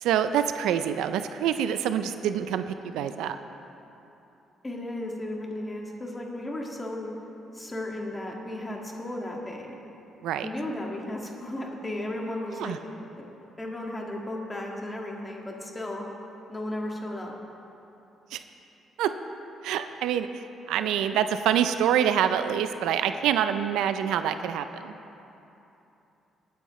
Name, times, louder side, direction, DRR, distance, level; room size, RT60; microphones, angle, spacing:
voice 1, 0.0-3.4 10.2-10.5 12.5-12.8 18.3-18.4 19.0-19.1 19.6-25.0, right 9 dB, 90° right, 10 dB, 0.4 m, -26 dB
voice 2, 4.6-7.1 7.5-9.8 10.4-12.8 13.1-13.2 13.6-16.0 16.5-17.3, left 1 dB, 20° left, -1 dB, 1.8 m, -34 dB
19.0 x 9.3 x 3.1 m, 3.0 s
cardioid pair, 90°, 0 cm